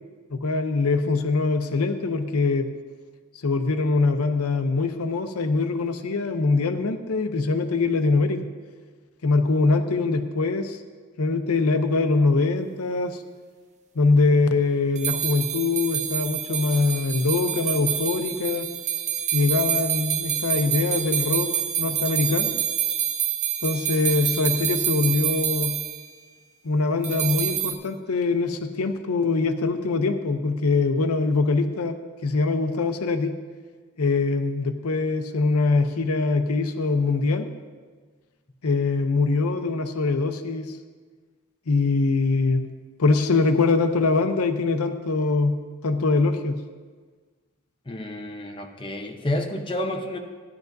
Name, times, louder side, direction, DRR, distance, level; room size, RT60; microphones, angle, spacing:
voice 1, 0.3-2.6 3.4-8.5 9.2-10.8 11.2-13.2 14.0-18.7 19.3-21.5 21.8-22.5 23.6-25.7 26.6-32.0 32.2-33.3 34.0-37.5 38.6-40.8 41.7-42.6 43.0-45.6 45.8-46.6, left 3 dB, 85° left, 8 dB, 0.7 m, -23 dB
sound 1, 15.0-26.1 27.0-27.7, right 10 dB, 30° right, 0.6 m, -27 dB
voice 2, 47.9-50.2, left 1 dB, 25° left, 2 dB, 0.8 m, -30 dB
15.5 x 10.5 x 2.7 m, 1.5 s
head